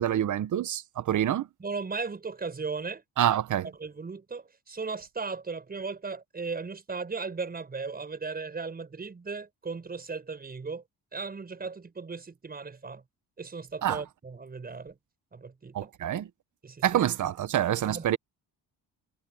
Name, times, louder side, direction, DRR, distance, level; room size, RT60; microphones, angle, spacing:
voice 1, 0.0-1.5 3.2-3.7 13.8-14.0 15.7-16.3 16.8-18.2, right 11 dB, 50° right, 1.0 m, -26 dB
voice 2, 1.6-3.0 3.8-10.8 11.1-13.0 13.4-15.0 15.3-15.9 16.6-17.0 17.8-18.1, right 4 dB, 25° right, 6.9 m, -37 dB
cardioid pair, 175°, 40 cm